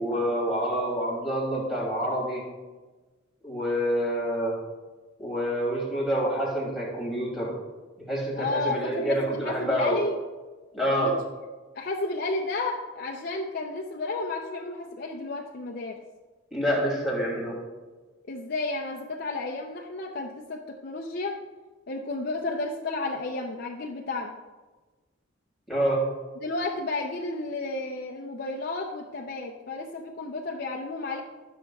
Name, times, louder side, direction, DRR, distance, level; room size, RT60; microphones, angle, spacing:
voice 1, 0.0-2.4 3.4-4.6 5.2-7.5 8.0-10.0 10.7-11.1 16.5-17.5 25.7-26.0, equal, ahead, -5 dB, 2.7 m, -27 dB
voice 2, 8.4-10.1 10.9-11.1 11.7-16.0 18.3-21.3 21.9-24.3 26.4-31.2, left 2 dB, 50° left, 0 dB, 0.6 m, -32 dB
15.5 x 6.3 x 2.3 m, 1.3 s
head